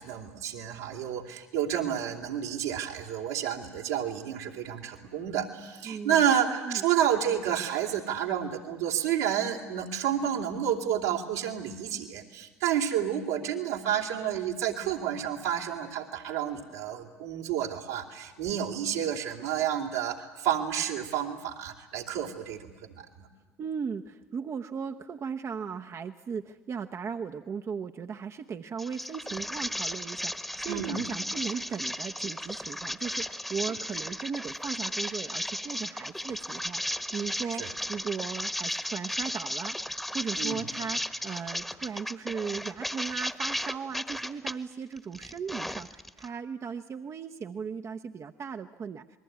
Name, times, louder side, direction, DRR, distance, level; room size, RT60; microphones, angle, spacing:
voice 1, 0.0-23.3 30.7-31.0 37.6-37.7 40.4-40.6, right 9 dB, 80° right, 0 dB, 3.0 m, -30 dB
voice 2, 5.8-6.2 6.6-6.8 23.6-36.8 37.1-49.1, right 6 dB, 40° right, 6 dB, 0.9 m, -37 dB
sound 1, 28.8-44.5 45.0-46.3, equal, ahead, 1.3 m, -35 dB
27.0 x 21.0 x 9.5 m, 1.2 s
hypercardioid pair, 65°, 8 cm